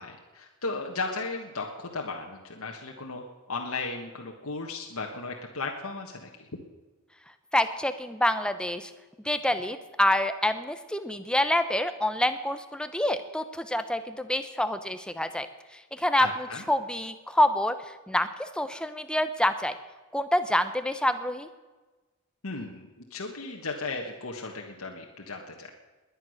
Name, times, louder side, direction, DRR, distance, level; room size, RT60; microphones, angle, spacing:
voice 1, 0.0-3.2 3.5-6.5 16.2-16.6 22.4-25.7, left 3 dB, 75° left, 1 dB, 1.5 m, -35 dB
voice 2, 7.5-8.9 9.2-15.5 15.7-16.3 16.7-17.8 18.1-19.8 20.1-21.5, left 1 dB, 5° left, 10 dB, 0.8 m, -27 dB
21.0 x 9.9 x 6.5 m, 1.2 s
head